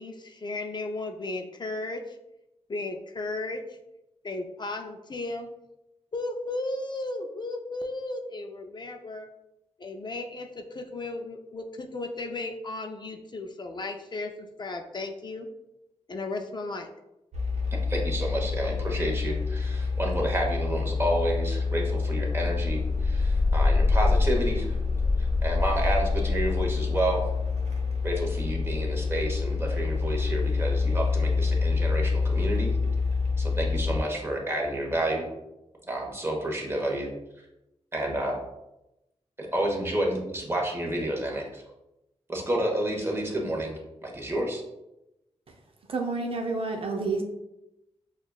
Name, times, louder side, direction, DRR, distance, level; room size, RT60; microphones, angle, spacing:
voice 1, 0.0-2.2 2.7-3.8 4.2-5.5 6.1-9.3 9.8-15.5 16.1-16.9, left 2 dB, 40° left, 4 dB, 0.4 m, -35 dB
sound 1, 17.3-34.0, left 4 dB, 85° right, 0.9 m, -26 dB
voice 2, 17.7-24.8 25.2-27.3 28.0-32.7 33.4-35.3 35.9-37.1 37.9-38.4 39.4-41.6 42.3-44.6, right 1 dB, 20° right, -1 dB, 1.0 m, -30 dB
voice 3, 45.9-47.2, right 3 dB, 55° right, 2 dB, 0.6 m, -29 dB
6.2 x 2.4 x 2.3 m, 0.91 s
wide cardioid pair, 90°, 11 cm